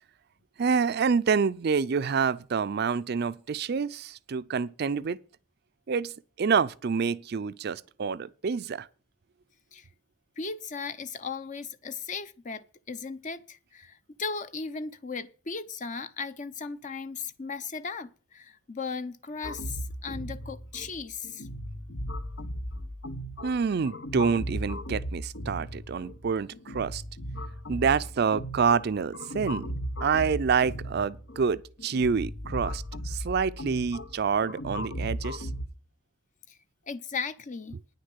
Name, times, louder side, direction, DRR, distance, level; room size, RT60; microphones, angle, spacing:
voice 1, 0.6-5.2 5.9-6.1 6.4-8.9 23.4-27.0 27.7-29.7 30.0-35.5, right 5 dB, 55° right, 0.4 m, -27 dB
voice 2, 10.4-21.5 36.5-36.6 36.9-37.8, left 5 dB, 40° left, 0.8 m, -37 dB
sound 1, 19.4-35.7, equal, 70° left, 0.9 m, -37 dB
9.8 x 6.6 x 7.9 m
head